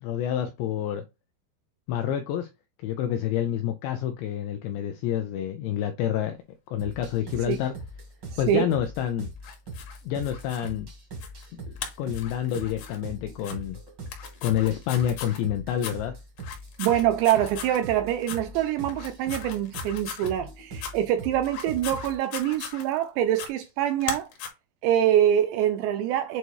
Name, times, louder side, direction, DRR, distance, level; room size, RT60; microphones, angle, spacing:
voice 1, 0.0-1.0 1.9-2.5 2.8-6.4 6.7-7.7 8.4-9.3 10.0-10.9 11.6-13.8 14.4-16.2, left 10 dB, 85° left, 2.5 m, -28 dB
sound 1, 6.8-22.1, right 2 dB, 65° right, 1.1 m, -41 dB
voice 2, 8.3-8.7 16.8-24.3 24.8-26.4, right 11 dB, 85° right, 2.5 m, -25 dB
sound 2, 9.4-10.7 11.2-11.5 11.8-13.0 13.4-13.5 14.1-15.4 15.8-16.0 16.4-17.8 18.2-18.4 18.9-20.3 20.8-20.9 21.4-23.0 23.3-23.5 24.0-24.5, left 8 dB, 70° left, 2.8 m, -38 dB
8.0 x 2.7 x 4.6 m
omnidirectional pair, 5.7 m